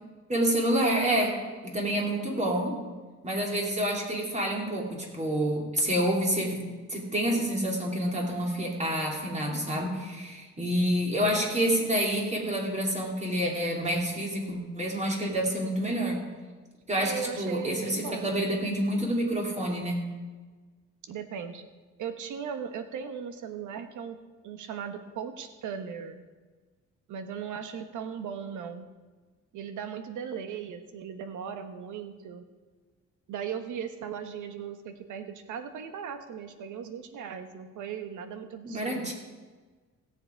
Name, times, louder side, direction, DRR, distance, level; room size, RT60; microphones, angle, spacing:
voice 1, 0.3-1.4 1.6-2.8 3.2-6.6 6.9-16.2 16.9-20.0 38.6-39.1, right 1 dB, 25° right, -1 dB, 3.1 m, -28 dB
voice 2, 17.0-18.5 21.1-21.6 22.0-24.2 24.4-26.2 27.1-28.9 29.5-32.4 33.3-39.1, right 7 dB, 80° right, 9 dB, 1.2 m, -38 dB
17.0 x 7.4 x 4.6 m, 1.4 s
cardioid pair, 90°, 30 cm